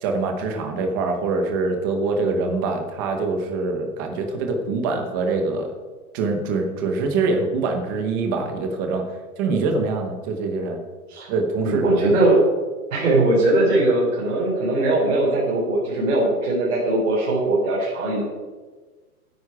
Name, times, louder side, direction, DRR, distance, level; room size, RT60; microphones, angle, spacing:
voice 1, 0.0-5.7 6.1-9.0 9.4-10.8 11.3-12.1, right 3 dB, 15° right, 4 dB, 0.9 m, -24 dB
voice 2, 11.6-12.4 12.9-18.2, right 2 dB, 55° right, -5 dB, 4.8 m, -20 dB
16.0 x 9.9 x 4.8 m, 1.3 s
hypercardioid pair, 175°, 45 cm